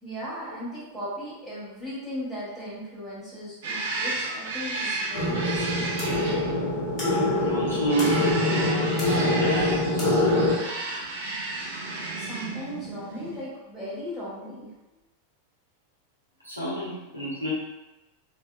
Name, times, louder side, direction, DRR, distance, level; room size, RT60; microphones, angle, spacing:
voice 1, 0.0-5.9 12.2-14.7, equal, ahead, -12 dB, 1.2 m, -37 dB
sound 1, 3.6-13.4, right 3 dB, 55° right, 0.6 m, -33 dB
sound 2, 5.1-10.5, left 2 dB, 35° left, 1.3 m, -24 dB
voice 2, 7.0-10.5 16.4-17.5, right 2 dB, 90° left, -8 dB, 1.1 m, -30 dB
3.3 x 2.5 x 2.3 m, 1.0 s
figure-of-eight pair, 90°, 0 cm